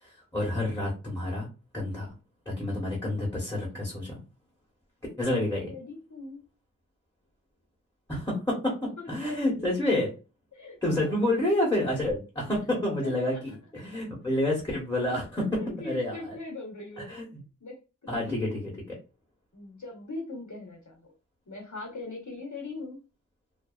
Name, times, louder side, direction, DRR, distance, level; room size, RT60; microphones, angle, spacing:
voice 1, 0.0-1.5 1.7-2.1 2.4-4.2 5.2-5.7 8.1-10.1 10.8-16.4 17.0-17.4 18.1-19.0, left 1 dB, 10° left, -4 dB, 1.2 m, -29 dB
voice 2, 5.6-6.5 9.0-9.4 10.5-11.2 13.0-13.6 15.6-17.2 17.6-18.8 19.5-21.1 21.5-23.0, left 3 dB, 65° left, 1 dB, 1.0 m, -41 dB
2.6 x 2.3 x 2.4 m, 0.30 s
wide cardioid pair, 40°, 32 cm